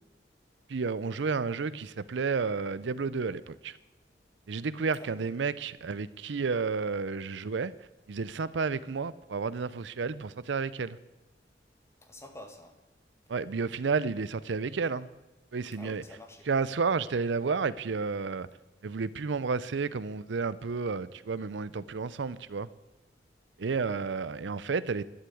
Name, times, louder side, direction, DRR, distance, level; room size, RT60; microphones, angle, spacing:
voice 1, 0.7-3.8 4.5-7.7 8.1-11.0 13.3-15.1 15.5-16.0 16.5-18.5 18.8-22.7 23.6-25.0, right 4 dB, 80° right, 0.5 m, -31 dB
voice 2, 12.0-12.8 13.3-13.5 15.7-16.5 23.9-24.1, left 1 dB, 15° left, 1.8 m, -49 dB
11.5 x 11.5 x 8.4 m
head